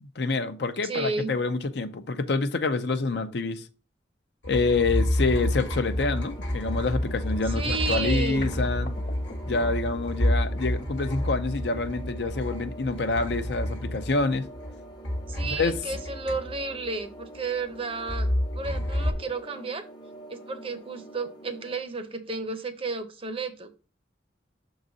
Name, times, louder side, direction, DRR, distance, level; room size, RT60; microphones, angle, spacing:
voice 1, 0.0-3.6 4.4-8.9 9.5-14.4 15.5-15.8, left 3 dB, 65° left, 0.6 m, -27 dB
voice 2, 0.8-1.3 7.5-8.5 15.3-18.3 18.5-19.8 20.3-23.7, right 3 dB, 30° right, 0.7 m, -32 dB
sound 1, 4.4-14.7 15.0-16.9 18.1-19.1, left 1 dB, 80° left, 1.1 m, -29 dB
sound 2, 5.2-21.8, right 2 dB, 25° left, 0.7 m, -45 dB
sound 3, 7.6-9.7, left 4 dB, 50° left, 1.2 m, -41 dB
6.4 x 3.9 x 3.9 m
head